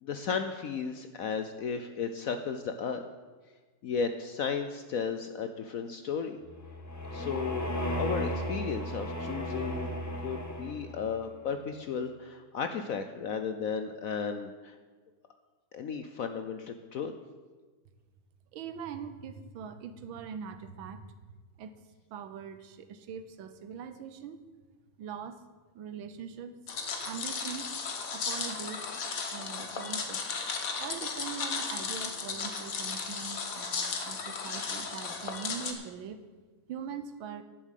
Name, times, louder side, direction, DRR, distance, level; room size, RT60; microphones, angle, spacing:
voice 1, 0.0-3.0 3.8-6.4 7.1-7.7 8.0-9.9 10.2-14.8 15.7-17.1, left 6 dB, 75° left, 8 dB, 0.8 m, -34 dB
sound 1, 6.4-11.1, equal, 15° left, 0.8 m, -35 dB
voice 2, 18.5-21.1 21.6-21.8 22.1-24.4 25.0-25.4 25.7-26.6 27.0-27.7 28.1-28.9 29.3-30.3 30.8-36.2 36.7-37.4, right 7 dB, 80° right, 11 dB, 1.6 m, -42 dB
sound 2, 26.7-35.7, left 5 dB, 50° left, 1.4 m, -35 dB
11.0 x 7.3 x 8.3 m, 1.4 s
omnidirectional pair, 2.2 m